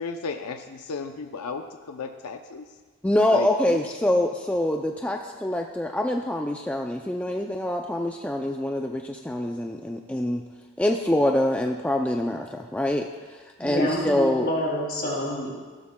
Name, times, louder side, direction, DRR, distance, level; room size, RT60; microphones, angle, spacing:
voice 1, 0.0-2.7 3.3-4.3, left 4 dB, 85° left, 6 dB, 0.5 m, -35 dB
voice 2, 3.0-10.4 10.8-14.5, left 1 dB, 5° left, 2 dB, 0.3 m, -25 dB
voice 3, 13.6-15.5, equal, 45° left, -3 dB, 2.8 m, -27 dB
15.5 x 13.0 x 2.2 m, 1.4 s
head